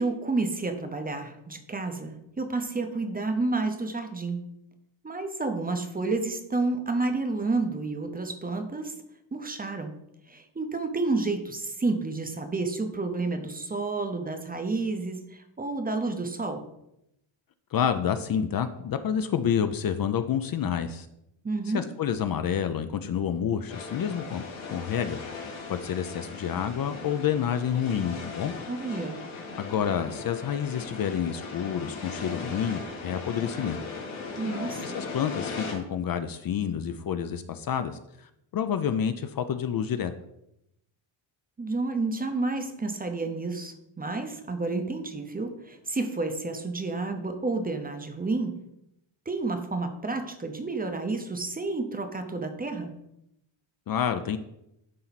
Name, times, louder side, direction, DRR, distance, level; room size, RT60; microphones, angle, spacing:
voice 1, 0.0-4.4 5.0-8.9 9.3-9.9 10.3-16.6 21.4-21.8 28.7-29.2 34.4-34.8 41.6-48.6 49.3-52.9, right 3 dB, 20° right, 6 dB, 0.6 m, -30 dB
voice 2, 17.7-21.1 21.7-24.4 24.7-25.2 25.7-28.5 29.6-33.8 34.8-38.0 38.5-40.1 53.9-54.4, left 8 dB, 50° left, 9 dB, 0.5 m, -28 dB
sound 1, 23.7-35.7, left 4 dB, 90° left, 2.3 m, -38 dB
11.5 x 4.4 x 4.0 m, 0.83 s
wide cardioid pair, 180°, 47 cm